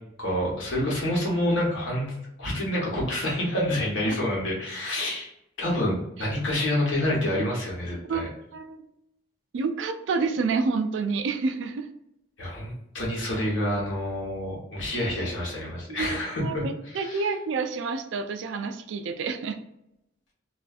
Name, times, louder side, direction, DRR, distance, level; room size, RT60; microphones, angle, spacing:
voice 1, 0.2-5.3 5.6-8.2 12.4-16.6 16.9-17.3, left 1 dB, 80° left, -4 dB, 1.1 m, -28 dB
voice 2, 8.1-8.8 9.5-11.9 16.0-19.6, right 4 dB, 75° right, 7 dB, 0.3 m, -29 dB
2.5 x 2.3 x 2.4 m, 0.82 s
head